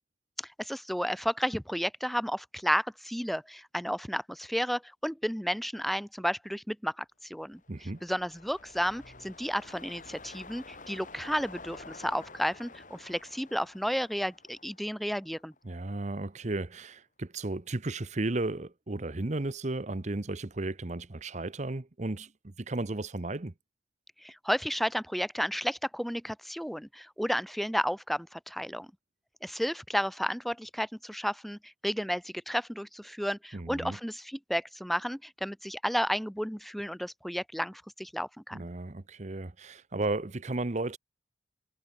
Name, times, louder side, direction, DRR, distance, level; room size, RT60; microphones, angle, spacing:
voice 1, 0.6-7.6 8.0-15.5 24.2-28.9 29.4-38.6, equal, ahead, 1.9 m, -32 dB
sound 1, 7.5-15.9 16.3-16.4, left 3 dB, 45° left, 4.9 m, -50 dB
voice 2, 7.7-8.0 15.6-23.5 33.5-34.0 38.5-41.0, right 2 dB, 40° right, 0.9 m, -34 dB
head